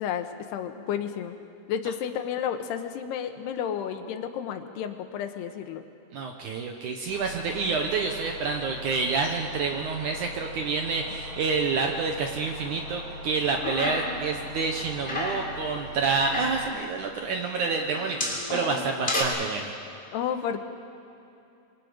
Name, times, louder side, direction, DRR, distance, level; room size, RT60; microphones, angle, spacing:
voice 1, 0.0-1.4 1.7-5.9 13.6-13.8 20.1-20.6, left 8 dB, 80° left, 7 dB, 3.1 m, -31 dB
voice 2, 6.1-19.7, right 4 dB, 70° right, 3 dB, 2.0 m, -28 dB
sound 1, 7.1-16.7, equal, 85° right, 4.7 m, -41 dB
sound 2, 13.5-14.3 14.6-15.5 16.0-16.7 17.6-19.2, left 1 dB, 15° left, 3.1 m, -31 dB
27.0 x 23.5 x 5.1 m, 2.8 s
omnidirectional pair, 4.7 m